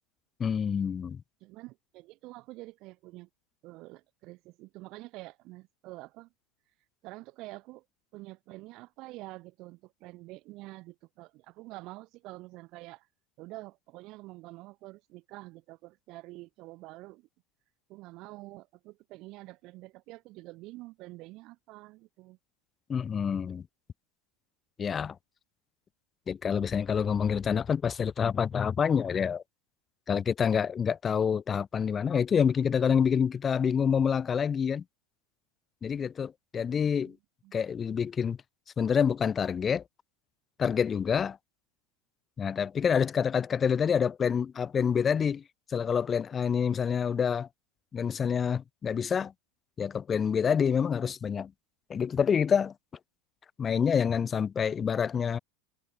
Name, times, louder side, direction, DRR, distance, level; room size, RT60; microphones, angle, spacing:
voice 1, 0.4-1.2 22.9-23.6 24.8-25.2 26.3-29.4 30.1-34.8 35.8-37.2 37.5-38.4 38.8-39.8 40.6-41.4 42.4-45.4 45.7-47.5 47.9-49.3 49.8-51.5 51.9-52.7 53.6-55.4, left 7 dB, 25° left, 0.6 m, -27 dB
voice 2, 1.4-3.3 3.6-6.3 7.0-7.8 8.1-13.1 13.4-17.3 17.9-22.4 36.8-37.2 37.4-37.5, right 20 dB, 45° right, 6.8 m, -47 dB
figure-of-eight pair, 80°, 0 cm